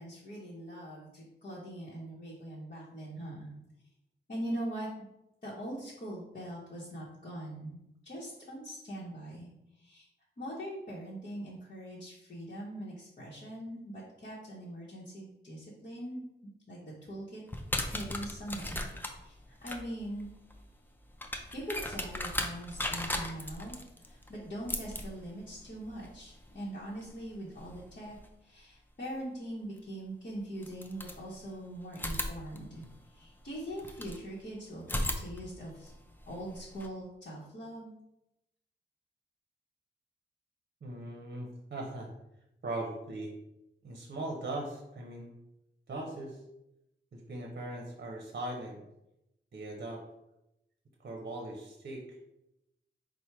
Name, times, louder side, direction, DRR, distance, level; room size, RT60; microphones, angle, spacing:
voice 1, 0.0-3.5 4.3-4.9 5.4-9.5 9.7-10.1 10.4-16.2 16.7-17.4 17.9-20.3 21.5-32.8 33.1-35.9 36.3-37.9, right 1 dB, 45° left, -6 dB, 0.9 m, -42 dB
sound 1, 17.5-28.3 29.8-29.9 30.6-31.6 31.9-34.2 34.8-36.9, left 1 dB, 10° left, 0.4 m, -39 dB
voice 2, 40.8-42.1 42.6-43.3 43.8-45.3 45.9-46.4 47.1-48.8 49.5-50.0 51.0-52.0, right 2 dB, 55° right, 0 dB, 0.7 m, -39 dB
4.3 x 2.1 x 4.5 m, 0.88 s
wide cardioid pair, 115°, 19 cm